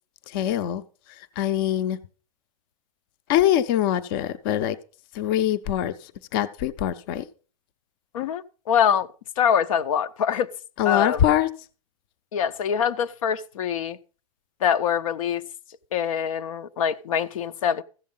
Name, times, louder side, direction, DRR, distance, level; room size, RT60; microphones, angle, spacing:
voice 1, 0.3-0.8 1.1-2.0 3.3-4.8 5.1-7.3 10.8-11.5, left 11 dB, 40° left, 0.6 m, -23 dB
voice 2, 8.1-9.1 9.4-10.5 10.8-11.3 12.3-14.0 14.6-15.4 15.9-17.8, left 8 dB, 75° left, 0.7 m, -24 dB
14.5 x 7.3 x 5.5 m
supercardioid pair, 170°, 17 cm